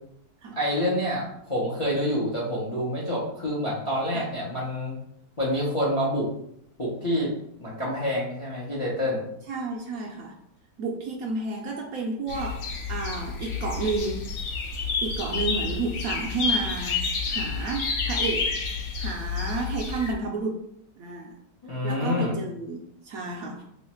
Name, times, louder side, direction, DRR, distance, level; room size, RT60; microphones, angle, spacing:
voice 1, 0.5-4.9 5.4-6.3 6.8-7.3 7.6-9.2 21.6-22.3, equal, 30° left, -5 dB, 0.6 m, -27 dB
voice 2, 9.5-10.4 10.8-14.3 15.0-18.5 19.0-20.7 21.0-21.4 21.8-23.6, right 3 dB, 70° right, -1 dB, 0.9 m, -31 dB
sound 1, 12.3-20.1, left 4 dB, 70° left, 0.7 m, -29 dB
3.1 x 2.4 x 4.2 m, 0.71 s
omnidirectional pair, 1.8 m